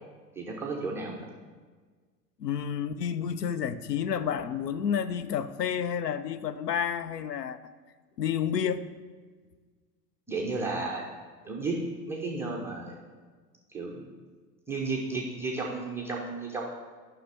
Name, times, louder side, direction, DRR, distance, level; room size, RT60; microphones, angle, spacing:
voice 1, 0.4-1.3 10.3-11.1 11.4-11.8 12.1-13.0 13.7-14.0 14.7-16.6, right 3 dB, 5° right, -3 dB, 0.3 m, -33 dB
voice 2, 2.4-7.6 8.2-8.9, left 8 dB, 80° left, 14 dB, 0.6 m, -30 dB
9.4 x 5.8 x 3.4 m, 1.5 s
figure-of-eight pair, 90°, 48 cm